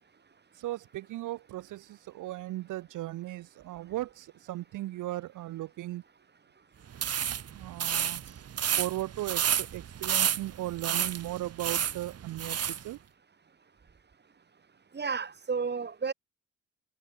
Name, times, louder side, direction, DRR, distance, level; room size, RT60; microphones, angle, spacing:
voice 1, 0.5-6.0 7.2-8.2 8.8-13.0, right 15 dB, 90° right, 4.3 m, -37 dB
sound 1, 6.9-12.8, right 9 dB, 55° right, 2.9 m, -31 dB
voice 2, 14.9-16.1, right 5 dB, 35° right, 4.9 m, -32 dB
cardioid pair, 90°, 30 cm